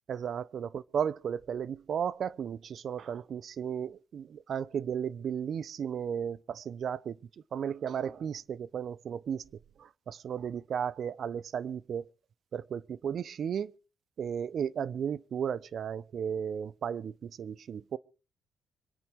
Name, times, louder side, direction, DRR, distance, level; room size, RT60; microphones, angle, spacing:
voice 1, 0.1-7.2 7.5-9.4 9.8-12.1 12.5-13.7 14.2-18.0, right 8 dB, 60° right, 0.8 m, -34 dB
26.5 x 9.1 x 4.7 m
cardioid pair, 90°, 0 cm